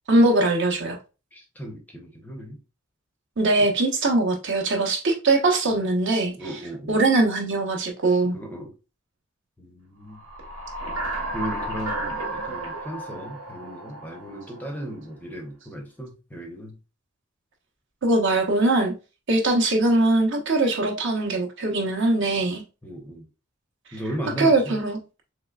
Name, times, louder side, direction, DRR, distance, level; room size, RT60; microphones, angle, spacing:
voice 1, 0.1-1.0 3.4-6.6 6.9-8.4 18.0-18.9 19.3-22.6 24.4-25.0, right 2 dB, 55° right, 0.7 m, -21 dB
voice 2, 1.3-2.6 3.6-3.7 6.4-7.0 8.3-8.7 9.6-10.2 11.3-16.7 22.8-23.2 23.9-24.8, equal, 10° left, 0.5 m, -36 dB
sound 1, 10.2-14.8, right 2 dB, 75° right, 1.1 m, -33 dB
3.7 x 3.1 x 2.2 m
head